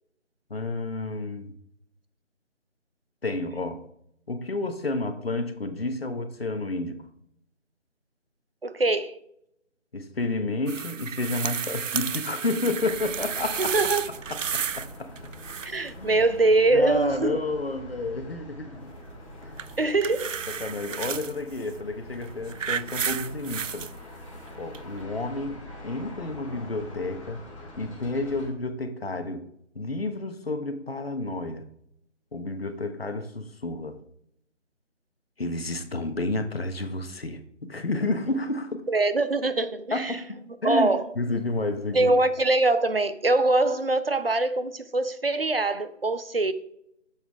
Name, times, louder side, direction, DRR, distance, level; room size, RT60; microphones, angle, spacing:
voice 1, 0.5-1.5 3.2-3.8 4.3-7.0 9.9-13.8 14.1-15.1 16.0-16.2 16.7-19.0 19.4-19.6 20.5-23.9 24.6-27.4 27.8-29.5 29.7-31.7 32.3-34.0 35.4-38.9 39.9-42.2, left 2 dB, 50° left, 1.1 m, -31 dB
voice 2, 8.6-9.2 13.6-14.0 15.6-17.4 19.8-20.4 38.9-40.2 40.6-41.0 41.9-46.5, right 2 dB, 50° right, 0.8 m, -23 dB
sound 1, 10.7-14.9 15.2-15.9 19.6-21.3 22.1-23.9 24.7-24.8, right 7 dB, 80° right, 0.5 m, -32 dB
sound 2, 12.8-28.5, equal, 25° left, 2.2 m, -44 dB
9.6 x 7.2 x 3.5 m
figure-of-eight pair, 165°, 37 cm